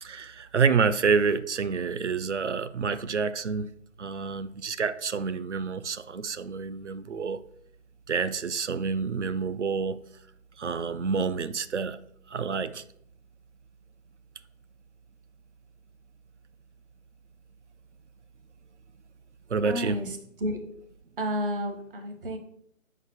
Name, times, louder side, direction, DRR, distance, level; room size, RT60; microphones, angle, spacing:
voice 1, 0.0-3.7 4.0-7.4 8.1-10.0 10.6-12.0 12.3-12.8 19.5-20.0, right 5 dB, 55° right, 0.6 m, -28 dB
voice 2, 19.6-20.1 20.4-20.6 21.2-22.4, equal, 40° right, 1.2 m, -31 dB
5.0 x 4.9 x 6.0 m
figure-of-eight pair, 150°, 41 cm